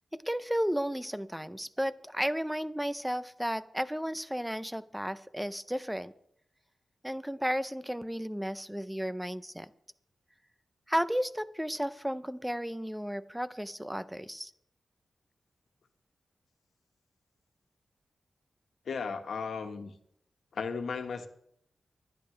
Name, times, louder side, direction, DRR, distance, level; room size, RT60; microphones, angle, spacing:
voice 1, 0.3-6.1 7.0-9.7 10.9-14.5, equal, 5° right, 14 dB, 0.5 m, -33 dB
voice 2, 18.8-19.9 20.5-21.3, left 5 dB, 80° left, 5 dB, 1.4 m, -35 dB
25.0 x 10.5 x 3.3 m, 0.71 s
wide cardioid pair, 160°, 0 cm